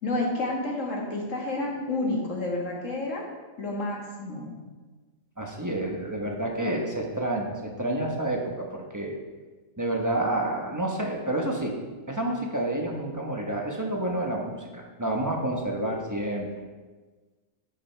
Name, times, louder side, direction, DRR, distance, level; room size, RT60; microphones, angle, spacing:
voice 1, 0.0-3.3 3.6-4.5, left 2 dB, 75° left, -1 dB, 2.0 m, -30 dB
voice 2, 5.4-9.2 9.8-11.8 12.1-16.5, right 1 dB, 15° right, 0 dB, 1.0 m, -29 dB
10.5 x 5.1 x 4.4 m, 1.3 s
omnidirectional pair, 1.3 m